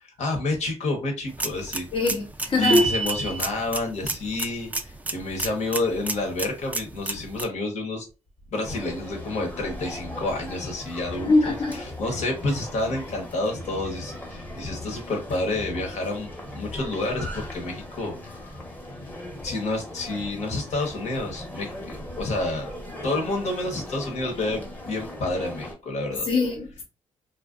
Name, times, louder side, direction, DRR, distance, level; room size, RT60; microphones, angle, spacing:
voice 1, 0.2-1.9 2.6-8.0 8.5-11.5 12.0-18.5 19.4-22.7 23.0-26.3, left 2 dB, 70° left, 0.9 m, -29 dB
sound 1, 1.3-7.4, right 2 dB, 15° right, 0.3 m, -33 dB
voice 2, 1.9-2.9 11.2-11.8 26.2-26.8, left 3 dB, 50° left, 0.6 m, -23 dB
sound 2, 2.6-3.5, right 1 dB, 70° right, 0.6 m, -22 dB
sound 3, 8.6-25.7, left 1 dB, 15° left, 0.8 m, -38 dB
2.5 x 2.2 x 2.3 m
cardioid pair, 80°, 12 cm